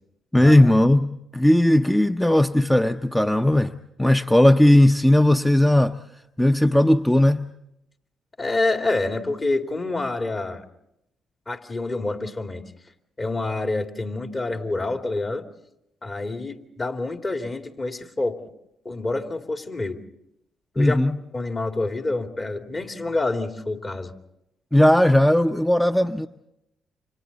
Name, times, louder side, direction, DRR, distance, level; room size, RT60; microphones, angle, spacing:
voice 1, 0.3-3.7 4.0-6.0 6.4-7.5 20.8-21.2 24.7-26.3, left 1 dB, 5° left, 8 dB, 0.7 m, -17 dB
voice 2, 8.4-10.6 11.5-12.6 13.2-15.4 16.0-18.4 18.8-20.0 20.7-21.0 21.3-24.1, left 2 dB, 35° left, 5 dB, 2.6 m, -27 dB
29.5 x 26.0 x 4.1 m, 0.82 s
hypercardioid pair, 50°, 0 cm